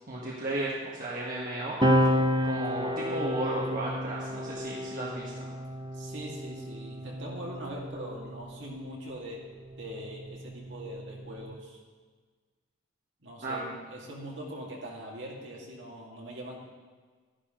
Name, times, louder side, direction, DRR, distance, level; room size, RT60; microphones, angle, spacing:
voice 1, 0.1-1.8 2.4-5.5 13.4-13.6, right 1 dB, 45° right, -5 dB, 1.6 m, -34 dB
sound 1, 1.8-8.8, left 4 dB, 20° left, 1.4 m, -43 dB
sound 2, 1.8-8.7 9.7-11.5, equal, 20° right, 0.6 m, -31 dB
voice 2, 5.9-9.4 9.8-11.8 13.2-16.6, equal, 65° right, -2 dB, 2.3 m, -42 dB
12.5 x 11.0 x 3.8 m, 1.5 s
head